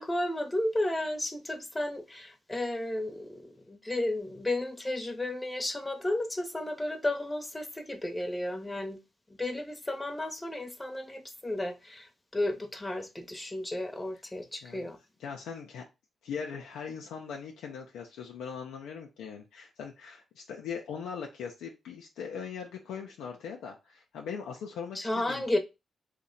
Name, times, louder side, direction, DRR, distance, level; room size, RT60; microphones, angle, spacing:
voice 1, 0.0-9.0 9.3-15.0 24.9-25.6, left 1 dB, 20° left, 0.8 m, -33 dB
voice 2, 15.2-15.9 16.2-25.4, left 6 dB, 90° left, 0.4 m, -40 dB
2.8 x 2.1 x 3.8 m
cardioid pair, 60°, 0 cm